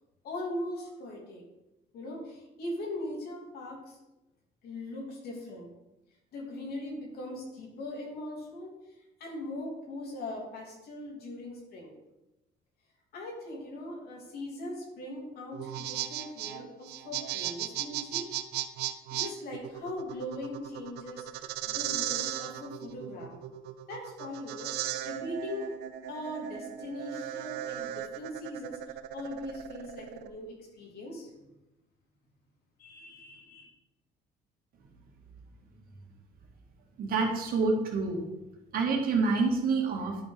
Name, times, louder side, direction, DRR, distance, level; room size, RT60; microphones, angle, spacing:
voice 1, 0.2-1.4 1.9-4.0 4.6-5.7 6.3-8.7 9.2-11.9 13.1-18.3 19.1-23.4 23.9-25.7 26.1-28.8 29.1-31.3 32.8-33.6, left 1 dB, 65° left, -1 dB, 3.0 m, -40 dB
sound 1, 15.5-30.3, right 12 dB, 75° right, 0.6 m, -37 dB
voice 2, 37.0-38.2 38.7-40.2, right 4 dB, 60° right, 1 dB, 2.1 m, -27 dB
11.0 x 4.6 x 5.1 m, 0.97 s
cardioid pair, 110°, 17 cm